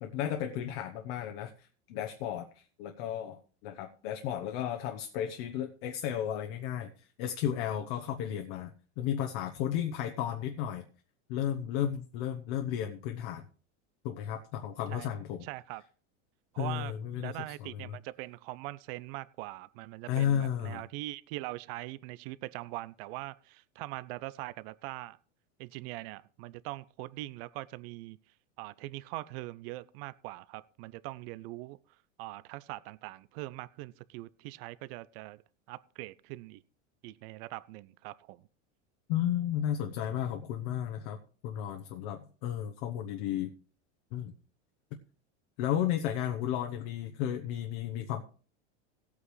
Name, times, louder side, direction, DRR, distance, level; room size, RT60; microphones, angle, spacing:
voice 1, 0.0-6.9 7.2-10.8 11.3-13.4 14.0-15.4 16.6-18.0 20.1-20.8 39.1-43.5 44.1-44.3 45.6-48.2, left 10 dB, 60° left, 4 dB, 1.0 m, -33 dB
voice 2, 15.4-15.8 16.5-16.9 17.2-25.2 25.6-28.2 28.6-31.8 32.2-35.4 35.7-36.6 37.0-38.4, right 18 dB, 60° right, 19 dB, 0.6 m, -42 dB
17.5 x 8.4 x 3.2 m, 0.40 s
supercardioid pair, 145°, 34 cm